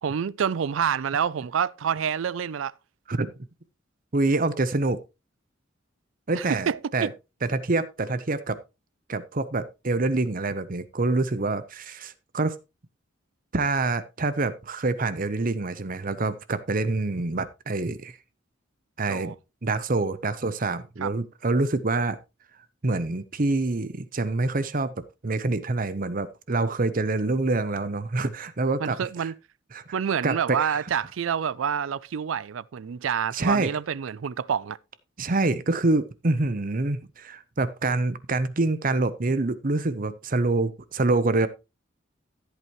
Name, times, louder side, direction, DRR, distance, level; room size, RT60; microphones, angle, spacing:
voice 1, 0.0-2.7 6.3-7.1 19.1-19.3 21.0-21.1 28.8-29.3 29.9-34.8, right 7 dB, 85° right, 0.4 m, -27 dB
voice 2, 4.1-5.0 6.3-7.1 7.4-8.6 9.1-12.6 13.5-18.2 19.0-19.3 19.6-22.2 22.8-24.9 25.2-29.3 29.7-29.9 30.2-30.8 33.3-33.7 35.2-41.5, right 2 dB, 45° right, 0.8 m, -26 dB
14.0 x 8.2 x 3.1 m
head